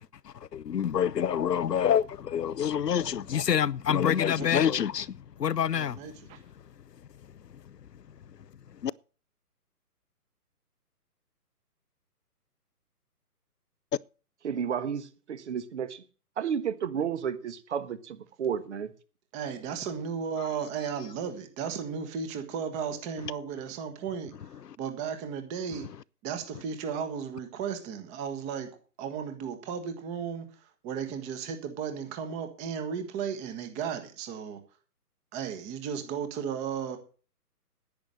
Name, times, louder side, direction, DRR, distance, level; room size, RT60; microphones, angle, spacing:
voice 1, 0.2-6.0 7.5-7.6 8.8-8.9, left 8 dB, 90° left, 0.7 m, -27 dB
voice 2, 5.7-6.4 19.3-24.3 24.8-25.9 26.2-28.7 29.0-34.6 35.3-37.0, right 7 dB, 15° right, 1.4 m, -35 dB
voice 3, 14.4-16.0 16.4-18.9, right 7 dB, 45° right, 1.5 m, -32 dB
10.5 x 9.9 x 6.5 m
hypercardioid pair, 145°, 48 cm